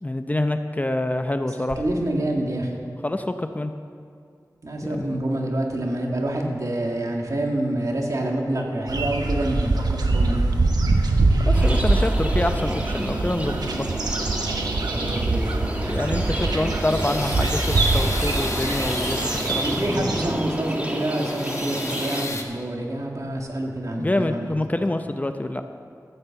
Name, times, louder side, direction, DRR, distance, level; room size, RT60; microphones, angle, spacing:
voice 1, 0.0-1.8 3.0-3.7 4.8-5.2 11.4-13.9 15.9-20.1 24.0-25.6, left 1 dB, 25° left, 7 dB, 0.7 m, -26 dB
voice 2, 1.6-2.7 4.6-10.4 14.9-15.7 19.6-24.5, right 1 dB, 55° right, 0 dB, 2.1 m, -27 dB
sound 1, 8.9-20.3, right 2 dB, 90° right, 1.0 m, -23 dB
sound 2, 11.5-22.3, equal, 20° right, 1.8 m, -31 dB
Drill Slow Stops, 16.2-20.2 20.7-22.4, left 2 dB, 50° left, 1.3 m, -34 dB
13.5 x 8.6 x 7.2 m, 2.2 s
wide cardioid pair, 60°, 7 cm